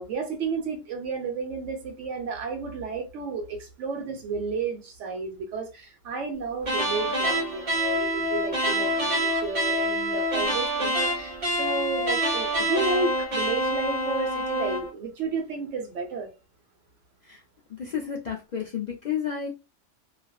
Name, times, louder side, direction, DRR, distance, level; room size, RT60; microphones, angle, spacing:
voice 1, 0.0-16.3, right 4 dB, 85° right, 1.0 m, -32 dB
sound 1, 6.6-14.9, equal, 40° right, 1.1 m, -26 dB
voice 2, 17.7-19.5, left 8 dB, 65° left, 0.4 m, -31 dB
2.5 x 2.3 x 2.2 m
omnidirectional pair, 1.2 m